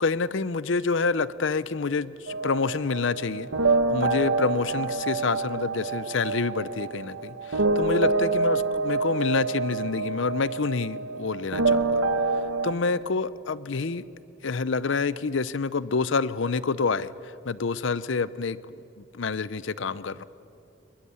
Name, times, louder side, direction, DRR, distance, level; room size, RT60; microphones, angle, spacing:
voice 1, 0.0-3.5 3.9-12.0 12.6-14.0 14.4-18.6 19.0-20.2, left 4 dB, 70° left, 18 dB, 0.6 m, -27 dB
sound 1, 2.3-12.7, right 3 dB, 85° right, 1.3 m, -27 dB
22.0 x 22.0 x 9.6 m, 2.7 s
head